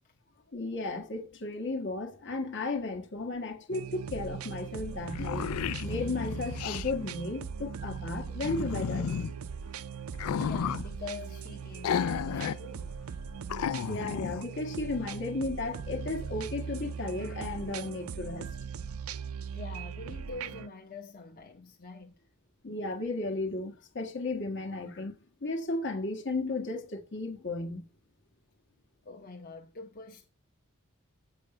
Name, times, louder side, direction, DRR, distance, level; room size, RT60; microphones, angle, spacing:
voice 1, 0.5-5.5 5.8-9.3 13.9-18.5 22.6-25.1 25.4-27.9, left 2 dB, 60° left, 1.5 m, -34 dB
sound 1, 3.7-20.7, right 6 dB, 80° right, 0.5 m, -39 dB
sound 2, 4.5-4.6 4.9-6.9 8.4-9.3 10.1-10.9 11.8-12.6 12.9-13.0 13.5-14.4, left 7 dB, 85° left, 0.4 m, -32 dB
voice 2, 10.2-13.0 19.5-22.1 29.0-30.3, left 4 dB, 40° left, 1.0 m, -45 dB
7.8 x 7.2 x 5.9 m
head